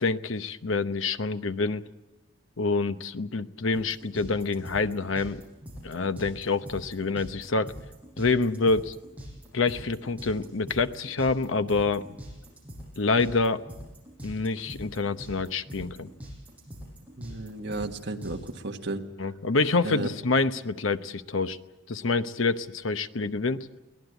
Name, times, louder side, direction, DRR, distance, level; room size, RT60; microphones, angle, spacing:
voice 1, 0.0-1.9 2.6-5.4 5.8-7.7 8.2-8.9 9.5-12.0 13.0-13.6 14.2-16.1 19.2-21.6 21.9-23.6, left 3 dB, 75° left, 10 dB, 0.9 m, -27 dB
sound 1, 3.7-18.5, equal, 5° right, 7.3 m, -43 dB
voice 2, 17.2-19.1 19.8-20.1, right 2 dB, 60° right, 3 dB, 1.7 m, -33 dB
23.0 x 18.0 x 8.1 m, 1.0 s
head